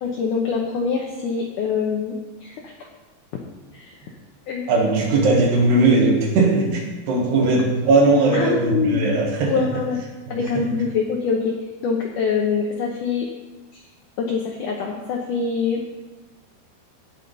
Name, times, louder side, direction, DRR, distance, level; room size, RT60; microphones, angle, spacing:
voice 1, 0.0-2.1 2.4-2.7 3.7-4.1 4.5-4.7 5.1-5.3 8.3-9.1 9.5-10.0 10.3-11.5 11.8-13.3 13.7-13.8 14.2-15.8, left 5 dB, 70° left, 0 dB, 2.1 m, -24 dB
voice 2, 4.7-9.7 10.3-10.4, right 2 dB, 90° right, -3 dB, 3.8 m, -18 dB
18.0 x 7.0 x 4.1 m, 1.2 s
omnidirectional pair, 4.6 m